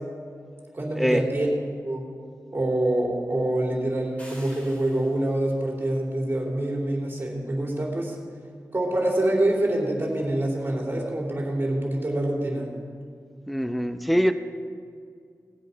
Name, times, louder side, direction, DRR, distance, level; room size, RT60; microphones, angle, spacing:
voice 1, 0.7-1.5 1.8-2.1 2.5-8.1 8.7-12.7, right 1 dB, 35° right, -1 dB, 3.5 m, -26 dB
sound 1, 4.2-5.5, equal, 20° left, 4.2 m, -48 dB
voice 2, 13.5-14.3, equal, ahead, 9 dB, 0.7 m, -23 dB
18.5 x 8.2 x 5.7 m, 2.2 s
wide cardioid pair, 75°, 6 cm